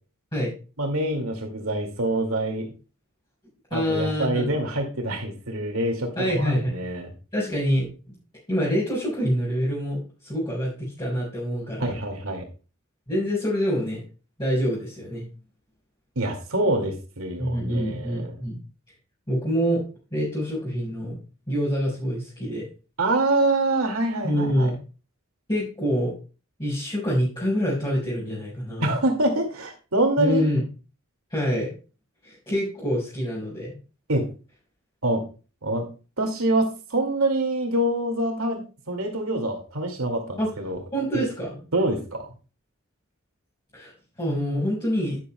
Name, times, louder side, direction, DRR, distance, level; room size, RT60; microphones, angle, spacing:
voice 1, 0.8-2.7 3.7-6.1 6.4-7.1 11.8-12.5 16.2-18.4 23.0-24.7 28.8-30.4 34.1-34.3 35.0-35.2 35.6-35.9 36.2-40.8 41.1-41.2 41.7-42.3, right 1 dB, 80° right, 3 dB, 2.3 m, -25 dB
voice 2, 3.7-4.4 6.1-6.8 7.3-7.9 8.5-12.0 13.1-14.0 14.4-15.3 17.4-18.6 19.3-19.8 20.1-21.2 21.5-22.6 24.2-24.8 25.5-26.1 26.6-29.0 30.2-30.6 31.3-31.7 32.2-33.8 40.4-40.5 40.9-41.6 43.7-43.9 44.2-45.2, equal, 20° left, -8 dB, 5.0 m, -26 dB
11.0 x 10.0 x 2.3 m, 0.33 s
head